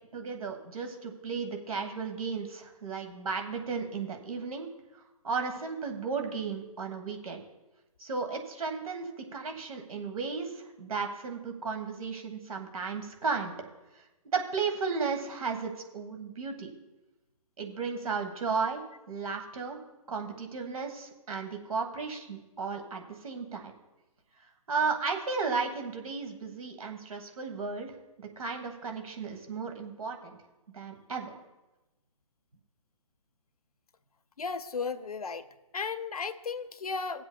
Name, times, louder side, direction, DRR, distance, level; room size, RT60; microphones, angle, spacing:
voice 1, 0.1-4.7 4.9-7.4 8.0-13.5 14.2-16.7 17.6-19.8 20.1-23.7 24.7-27.9 28.2-30.4 30.7-31.4, right 5 dB, 65° right, 4 dB, 1.4 m, -34 dB
voice 2, 34.4-35.5 35.7-37.2, left 5 dB, 80° left, 12 dB, 0.6 m, -35 dB
19.5 x 7.7 x 2.3 m, 1.0 s
figure-of-eight pair, 135°, 19 cm